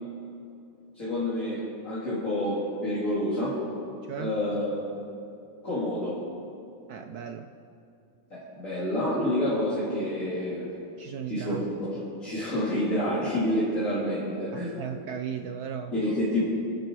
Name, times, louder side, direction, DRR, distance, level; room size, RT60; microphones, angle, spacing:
voice 1, 0.9-3.6 4.2-4.8 5.6-6.2 8.3-10.7 11.3-11.6 11.9-14.8 15.9-16.4, left 1 dB, 40° left, -9 dB, 3.6 m, -28 dB
voice 2, 4.0-4.4 6.9-7.5 11.0-11.6 14.5-15.9, right 8 dB, 70° right, 6 dB, 0.9 m, -36 dB
27.0 x 9.1 x 4.8 m, 2.6 s
omnidirectional pair, 2.2 m